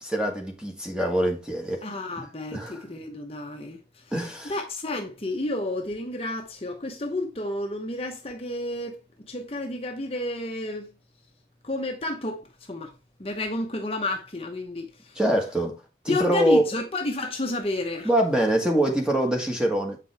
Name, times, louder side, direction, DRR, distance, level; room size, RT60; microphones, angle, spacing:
voice 1, 0.0-1.8 2.2-2.3 2.5-2.8 4.1-4.5 15.1-15.8 16.0-16.6 18.0-20.0, right 1 dB, 5° right, 1.5 m, -24 dB
voice 2, 1.8-9.0 9.3-10.9 11.6-12.9 13.2-15.2 16.1-18.1, left 2 dB, 35° left, 0.9 m, -31 dB
7.6 x 5.2 x 3.4 m
head